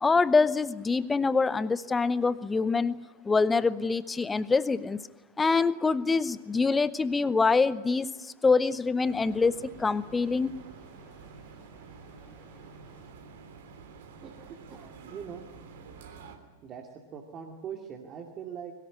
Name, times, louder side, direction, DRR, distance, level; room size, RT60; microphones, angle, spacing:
voice 1, 0.0-5.0 5.4-10.5, left 4 dB, 15° left, 17 dB, 0.9 m, -25 dB
sound 1, 9.0-16.4, right 5 dB, 55° right, 3.1 m, -49 dB
voice 2, 14.2-15.4 16.6-18.7, right 7 dB, 30° right, 2 dB, 2.4 m, -42 dB
22.0 x 19.0 x 9.9 m, 1.2 s
figure-of-eight pair, 90°, 0 cm